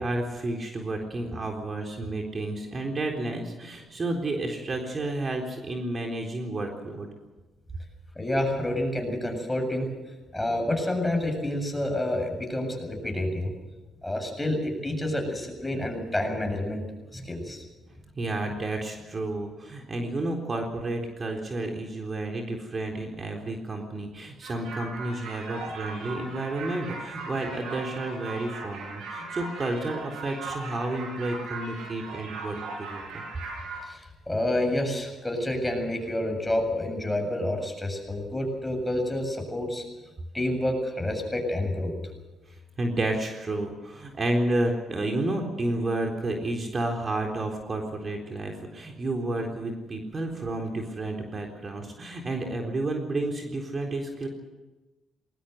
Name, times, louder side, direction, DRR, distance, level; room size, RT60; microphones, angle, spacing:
voice 1, 0.0-7.1 18.2-33.2 42.5-54.3, right 2 dB, 40° right, 2 dB, 3.9 m, -31 dB
voice 2, 8.2-9.9 10.3-13.5 14.0-16.8 17.1-17.6 33.9-39.8 40.3-41.9, left 1 dB, 10° left, 3 dB, 7.6 m, -28 dB
sound 1, 24.4-33.8, right 3 dB, 70° right, 7.9 m, -38 dB
20.5 x 19.0 x 8.0 m, 1.2 s
supercardioid pair, 65°, 0 cm